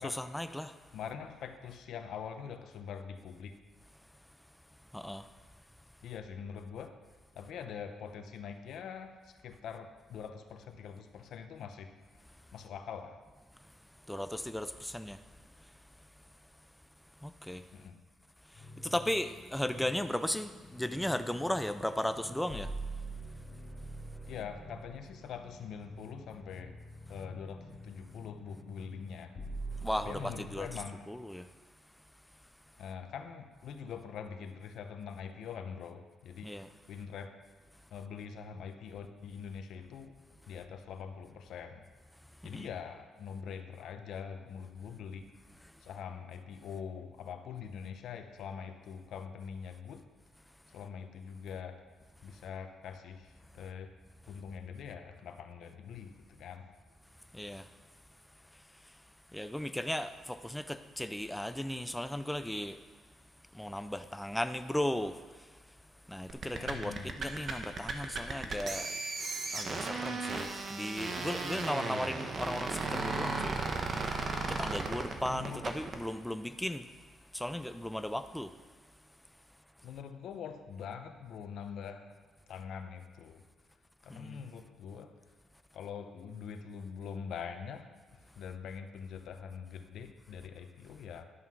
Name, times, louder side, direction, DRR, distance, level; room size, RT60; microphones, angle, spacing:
voice 1, 0.0-0.7 4.9-5.3 14.1-15.2 17.2-17.7 18.5-22.7 29.8-30.7 31.1-31.5 36.4-36.7 42.5-42.7 57.3-57.7 59.3-62.8 63.5-65.5 66.1-69.0 69.5-73.6 74.1-74.2 74.5-76.9 77.3-78.5 84.1-84.4, left 1 dB, 5° left, 10 dB, 0.5 m, -36 dB
voice 2, 0.9-3.5 6.0-7.0 7.3-11.9 12.5-13.2 17.7-18.0 24.3-26.8 27.1-29.3 30.0-31.0 32.8-36.5 36.9-37.4 37.9-40.1 40.5-41.8 42.4-45.3 45.8-50.0 50.7-51.8 52.2-53.9 54.3-56.7 66.5-67.1 75.3-75.6 79.8-82.2 82.5-83.4 84.0-85.1 85.7-87.9 88.4-91.3, left 7 dB, 75° left, 7 dB, 0.8 m, -44 dB
sound 1, 18.5-30.8, right 1 dB, 55° left, 2.7 m, -46 dB
sound 2, 66.3-76.0, right 3 dB, 45° right, 1.2 m, -35 dB
11.0 x 5.7 x 6.3 m, 1.4 s
cardioid pair, 90°, 0 cm